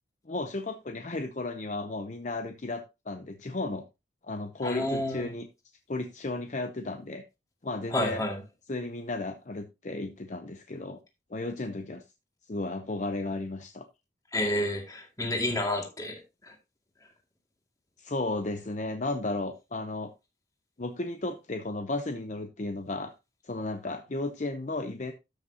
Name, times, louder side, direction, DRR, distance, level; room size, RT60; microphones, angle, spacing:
voice 1, 0.3-3.8 4.2-5.5 5.9-7.2 7.6-8.2 8.7-11.0 11.3-12.0 12.5-13.8 18.0-20.1 20.8-23.1 23.4-25.1, left 2 dB, 40° left, 0.7 m, -34 dB
voice 2, 4.6-5.3 7.9-8.4 14.3-16.5, left 1 dB, 20° left, 2.2 m, -30 dB
13.0 x 6.3 x 2.8 m
head